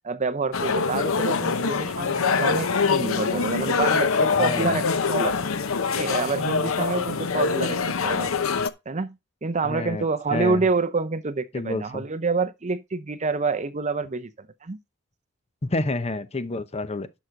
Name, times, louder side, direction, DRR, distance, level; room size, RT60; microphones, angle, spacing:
voice 1, 0.0-5.4 5.9-7.8 8.0-8.3 8.9-9.2 9.4-14.8, right 4 dB, 35° right, 0.6 m, -27 dB
sound 1, 0.5-8.7, left 5 dB, 75° left, 0.8 m, -24 dB
voice 2, 4.3-4.8 9.6-10.0 10.3-10.7 11.5-12.0 15.6-17.1, left 2 dB, 30° left, 0.7 m, -29 dB
11.5 x 6.4 x 3.8 m
head